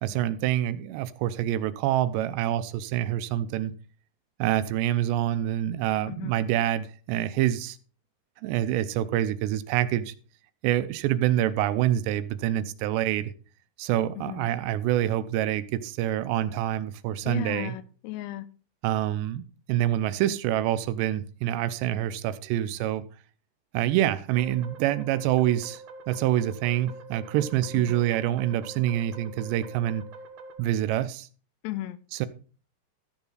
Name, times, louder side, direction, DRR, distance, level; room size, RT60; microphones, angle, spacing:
voice 1, 0.0-3.7 4.4-7.8 8.4-10.1 10.6-13.3 13.8-17.8 18.8-19.4 19.7-23.0 23.7-30.0 30.6-31.3 32.1-32.3, right 12 dB, 85° right, 2.9 m, -26 dB
voice 2, 14.2-14.5 17.3-18.5 27.7-28.0 31.6-32.0, left 16 dB, 85° left, 2.8 m, -35 dB
sound 1, 24.4-30.6, right 3 dB, 70° right, 1.6 m, -45 dB
14.0 x 7.2 x 3.9 m
omnidirectional pair, 4.9 m